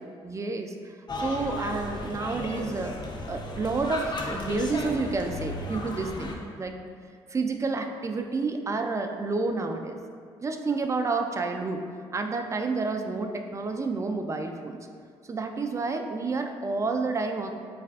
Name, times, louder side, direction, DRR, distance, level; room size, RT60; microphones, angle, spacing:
voice 1, 0.0-2.9 3.3-6.8 7.3-10.0 10.4-11.8 12.1-14.8 15.3-17.5, right 3 dB, 25° right, 5 dB, 0.3 m, -30 dB
sound 1, 1.1-6.4, left 1 dB, 35° left, 0.5 m, -35 dB
3.3 x 3.3 x 2.4 m, 2.1 s
hypercardioid pair, 55°, 13 cm